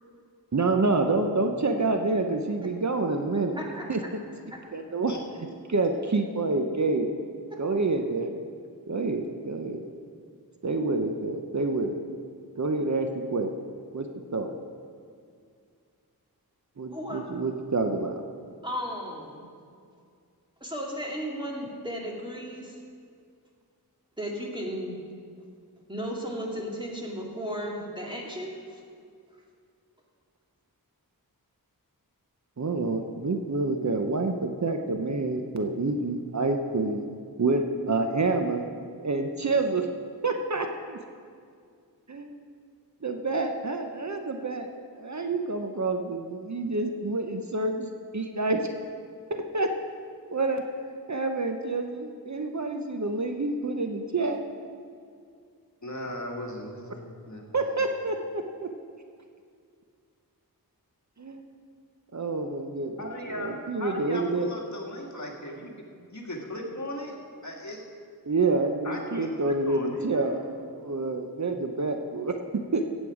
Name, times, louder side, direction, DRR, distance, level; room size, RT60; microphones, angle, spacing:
voice 1, 0.5-3.6 3.9-4.0 4.7-5.1 5.7-7.1 7.6-8.3 8.9-9.8 10.6-12.0 12.6-13.5 13.9-14.1 14.3-14.5 16.8-18.2 32.6-37.0 37.4-38.6 39.0-39.9 40.2-41.0 42.1-42.3 43.0-44.7 45.0-48.7 49.3-49.7 50.3-50.6 51.1-54.4 57.5-58.4 61.2-61.4 62.1-62.9 63.3-64.5 68.2-70.4 70.7-72.4 72.7-72.8, right 3 dB, 50° right, 5 dB, 0.8 m, -27 dB
voice 2, 3.5-3.9 4.4-4.6 16.9-17.2 18.6-19.5 20.6-22.8 24.2-25.0 25.9-28.8, equal, 10° right, -1 dB, 2.1 m, -35 dB
voice 3, 55.8-57.9 63.0-65.7 66.1-67.1 67.4-67.8 68.8-70.4, left 1 dB, 50° left, 0 dB, 1.8 m, -38 dB
15.0 x 8.2 x 4.9 m, 2.2 s
wide cardioid pair, 65°, 38 cm